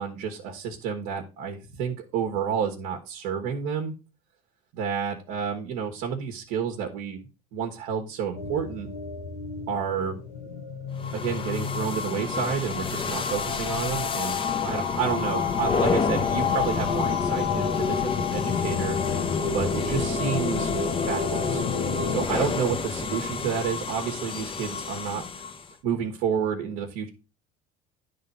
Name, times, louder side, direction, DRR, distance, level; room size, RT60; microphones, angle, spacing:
voice 1, 0.0-3.9 4.7-7.2 7.5-8.9 9.7-10.2 11.1-14.4 14.6-20.7 21.1-21.6 22.1-25.4 25.8-27.1, right 7 dB, 70° right, 2 dB, 1.3 m, -30 dB
sound 1, 8.4-22.3, left 7 dB, 80° left, 1.3 m, -31 dB
sound 2, 11.0-25.7, left 4 dB, 30° left, 0.9 m, -29 dB
10.5 x 3.8 x 5.4 m, 0.31 s
supercardioid pair, 85°, 18 cm